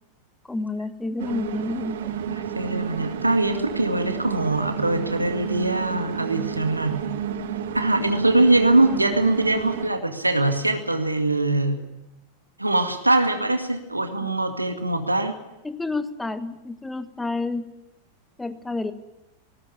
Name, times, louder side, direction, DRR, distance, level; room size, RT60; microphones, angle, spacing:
voice 1, 0.4-2.4 14.2-14.3 15.6-17.7 18.4-18.9, left 3 dB, 10° left, 12 dB, 1.4 m, -30 dB
sound 1, 1.2-9.9, right 9 dB, 60° right, 1.7 m, -31 dB
voice 2, 2.3-7.0 7.7-11.8 12.6-15.4, right 2 dB, 85° right, 7 dB, 2.1 m, -22 dB
19.5 x 18.5 x 9.9 m, 0.96 s
figure-of-eight pair, 90°, 0 cm